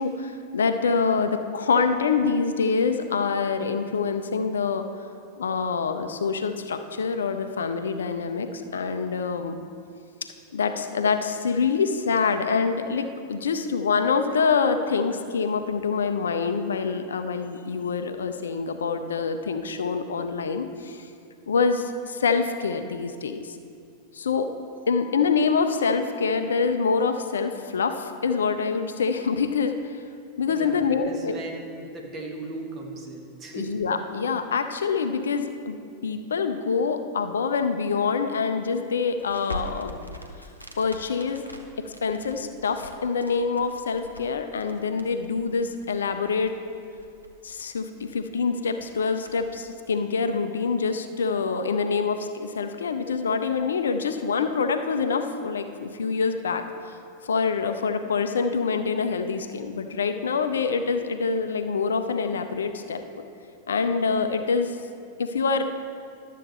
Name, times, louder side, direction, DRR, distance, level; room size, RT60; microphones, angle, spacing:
voice 1, 0.0-4.9 5.4-9.6 10.5-21.1 21.5-23.6 24.1-24.5 24.9-30.0 30.4-31.3 33.5-35.7 36.0-40.1 40.8-41.4 41.8-46.5 47.4-63.0 63.7-64.8 65.2-65.7, left 5 dB, 70° left, 8 dB, 0.5 m, -26 dB
voice 2, 30.5-33.8, right 2 dB, 25° right, 0 dB, 1.5 m, -37 dB
Crackle, 39.1-49.7, left 1 dB, 90° left, 0.8 m, -44 dB
12.0 x 7.3 x 4.1 m, 2.4 s
figure-of-eight pair, 90°, 0 cm